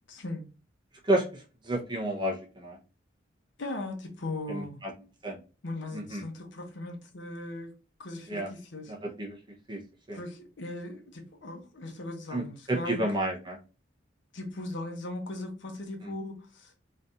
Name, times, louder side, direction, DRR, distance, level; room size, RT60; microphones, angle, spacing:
voice 1, 0.1-0.5 3.6-4.8 5.6-7.7 8.0-8.9 10.1-13.0 14.3-16.7, left 2 dB, 70° left, 1.0 m, -38 dB
voice 2, 1.0-2.8 4.5-4.9 5.2-5.4 5.9-6.2 8.3-8.5 8.9-9.4 9.7-9.8 10.1-10.2 12.3-13.6, right 1 dB, 25° right, 1.0 m, -31 dB
4.0 x 3.2 x 2.6 m
head